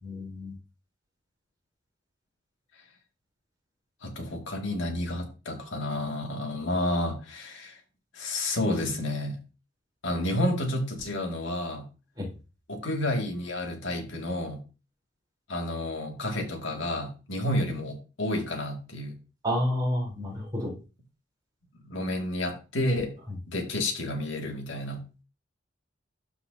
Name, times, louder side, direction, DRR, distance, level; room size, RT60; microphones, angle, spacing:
voice 1, 0.0-0.5 12.2-12.3 19.4-20.7, equal, 20° right, -3 dB, 3.4 m, -29 dB
voice 2, 4.0-7.8 8.1-9.4 10.0-11.8 12.7-14.6 15.5-19.2 21.8-23.1 23.5-25.0, left 1 dB, 90° left, 2 dB, 2.0 m, -30 dB
12.5 x 4.8 x 2.6 m, 0.32 s
head